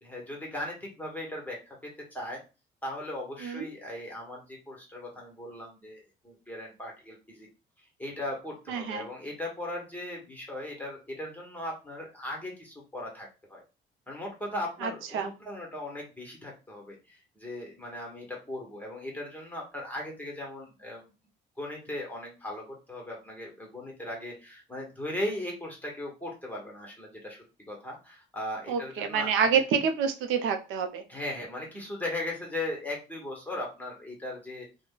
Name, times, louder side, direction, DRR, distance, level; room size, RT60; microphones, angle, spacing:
voice 1, 0.0-1.8 2.1-2.4 2.8-7.5 8.0-13.6 14.1-21.0 21.6-27.4 27.7-29.6 31.1-34.7, left 1 dB, 10° left, -1 dB, 1.1 m, -38 dB
voice 2, 8.7-9.0 14.8-15.3 28.7-31.0, right 6 dB, 85° right, 6 dB, 0.6 m, -27 dB
2.4 x 2.2 x 3.7 m, 0.30 s
cardioid pair, 90°, 20 cm